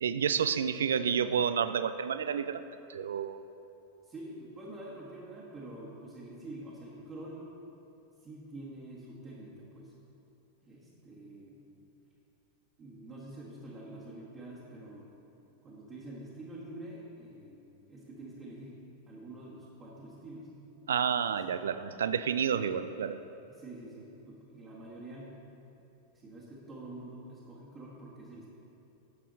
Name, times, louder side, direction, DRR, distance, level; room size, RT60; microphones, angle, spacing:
voice 1, 0.0-2.6 2.9-3.4 20.9-23.2, right 7 dB, 65° right, 13 dB, 0.3 m, -30 dB
voice 2, 4.0-7.5 8.2-9.9 10.6-11.6 12.8-15.1 15.6-17.6 17.9-18.8 19.1-20.5 21.3-21.4 22.2-22.9 23.5-25.3 26.1-28.5, right 1 dB, 25° right, -7 dB, 1.5 m, -46 dB
11.0 x 7.4 x 4.0 m, 2.9 s
figure-of-eight pair, 90°, 0 cm